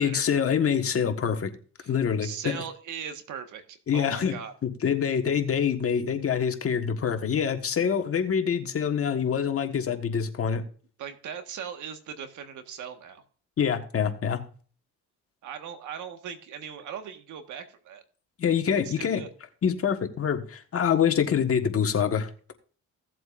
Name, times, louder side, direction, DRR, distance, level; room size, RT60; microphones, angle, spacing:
voice 1, 0.0-1.5 1.9-2.6 3.9-4.3 4.6-10.6 13.6-14.4 18.4-19.2 19.6-22.5, left 7 dB, 50° left, 6 dB, 1.5 m, -25 dB
voice 2, 2.2-4.5 11.0-13.2 15.4-18.0 18.8-19.3, right 8 dB, 80° right, 7 dB, 1.6 m, -39 dB
16.5 x 7.7 x 2.5 m, 0.41 s
cardioid pair, 90°, 30 cm